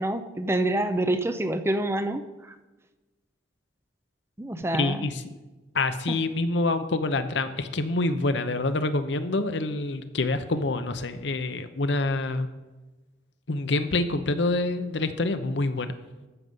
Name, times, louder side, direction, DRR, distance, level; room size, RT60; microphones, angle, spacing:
voice 1, 0.0-2.5 4.4-5.1 6.1-6.2, right 1 dB, 15° right, 9 dB, 0.5 m, -27 dB
voice 2, 4.7-5.2 5.7-12.5 13.5-15.9, left 2 dB, 65° left, 10 dB, 0.8 m, -26 dB
14.0 x 6.6 x 5.5 m, 1.2 s
head